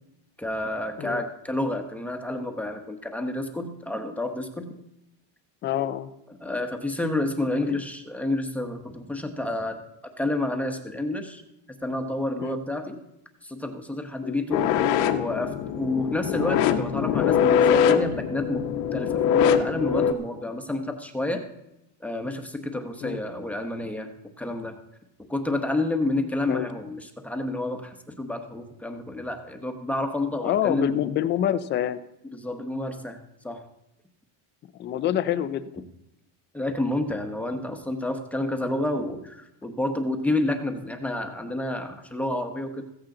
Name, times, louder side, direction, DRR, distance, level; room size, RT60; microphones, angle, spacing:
voice 1, 0.4-4.7 6.4-9.8 10.2-11.4 11.8-13.0 13.4-21.4 22.0-24.1 24.4-24.8 25.3-30.9 32.3-33.2 33.4-33.6 36.5-42.8, left 2 dB, 5° left, 5 dB, 0.9 m, -29 dB
voice 2, 5.6-6.1 7.6-7.8 12.4-12.6 14.2-14.4 23.0-23.2 26.5-26.7 30.4-32.0 34.8-35.8, left 11 dB, 25° left, 13 dB, 0.4 m, -26 dB
sound 1, 14.5-20.1, left 8 dB, 80° left, 1.3 m, -23 dB
15.5 x 14.5 x 3.8 m, 0.86 s
cardioid pair, 160°, 49 cm